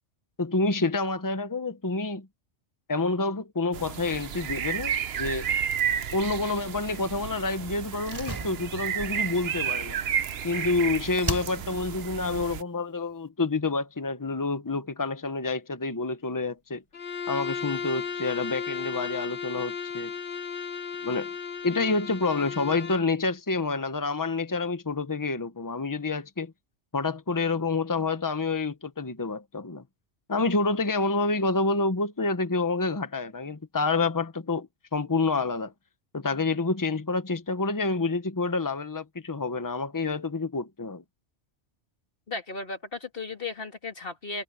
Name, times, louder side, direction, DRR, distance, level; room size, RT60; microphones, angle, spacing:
voice 1, 0.4-2.3 2.9-5.5 6.1-10.0 10.4-16.8 17.3-20.1 21.0-21.3 21.6-26.5 26.9-29.8 30.3-35.7 36.1-41.0, left 3 dB, 20° left, 1.1 m, -28 dB
sound 1, 3.7-12.6, right 8 dB, 60° right, 1.0 m, -32 dB
Slam, 8.0-10.8 11.2-12.0 12.3-12.4, right 1 dB, 20° right, 4.5 m, -36 dB
Bowed string instrument, 16.9-23.1, left 6 dB, 80° left, 2.8 m, -35 dB
voice 2, 42.3-44.4, left 3 dB, 50° left, 2.6 m, -35 dB
omnidirectional pair, 1.2 m